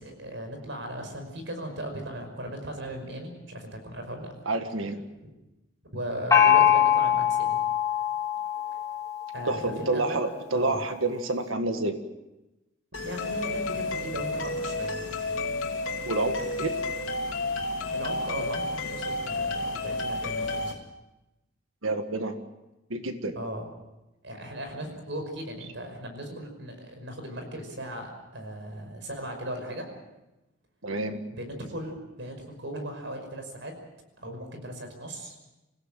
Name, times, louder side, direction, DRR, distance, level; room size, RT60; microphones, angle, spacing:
voice 1, 0.0-4.3 5.9-7.6 9.3-10.2 10.5-10.8 13.0-15.0 17.9-20.8 23.4-23.7 24.2-29.9 31.3-33.7 34.2-35.4, right 1 dB, 65° right, 5 dB, 5.5 m, -37 dB
voice 2, 4.5-5.0 9.5-12.0 16.1-16.8 21.8-22.4 22.9-23.3 30.8-31.2, right 2 dB, 85° right, 7 dB, 1.8 m, -29 dB
Gong, 6.3-9.8, left 9 dB, 15° left, 2.6 m, -23 dB
sound 1, 12.9-20.7, left 2 dB, 90° left, 2.8 m, -31 dB
26.5 x 16.5 x 7.6 m, 1.0 s
head